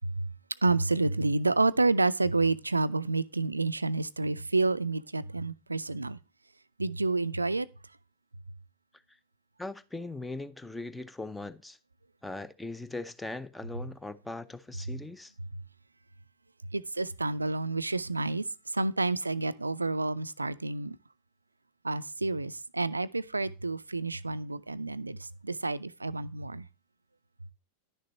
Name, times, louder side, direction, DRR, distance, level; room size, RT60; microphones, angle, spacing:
voice 1, 0.6-6.2 6.8-7.7 16.7-18.5 18.7-21.0 21.8-25.2 25.4-26.6, right 3 dB, 80° right, 0.4 m, -29 dB
voice 2, 9.6-11.8 12.2-15.3, left 2 dB, 5° left, 0.6 m, -40 dB
10.5 x 6.6 x 3.1 m
figure-of-eight pair, 90°, 0 cm